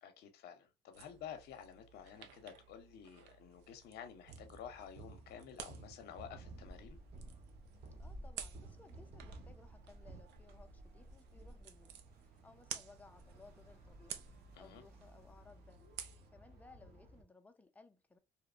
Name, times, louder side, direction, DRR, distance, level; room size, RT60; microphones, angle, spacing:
voice 1, 0.0-7.0 14.5-14.8, left 8 dB, 70° left, 0.6 m, -51 dB
sound 1, 0.9-16.3, right 9 dB, 85° right, 0.4 m, -54 dB
sound 2, 4.3-10.2, right 4 dB, 40° right, 0.6 m, -55 dB
sound 3, 6.1-17.2, equal, 65° right, 0.9 m, -56 dB
voice 2, 8.0-12.0 12.4-14.2 14.6-15.8 16.3-18.2, left 3 dB, 10° left, 0.4 m, -61 dB
2.8 x 2.0 x 2.4 m
cardioid pair, 110°, 17 cm